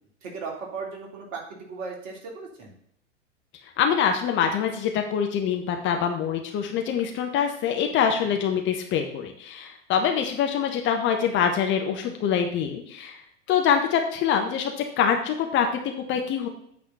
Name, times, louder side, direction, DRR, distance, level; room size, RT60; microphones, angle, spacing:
voice 1, 0.2-2.7, right 4 dB, 40° right, -1 dB, 3.2 m, -36 dB
voice 2, 3.8-13.2 13.5-16.5, left 7 dB, 30° left, 4 dB, 1.2 m, -25 dB
8.9 x 4.2 x 7.0 m, 0.70 s
figure-of-eight pair, 95°, 37 cm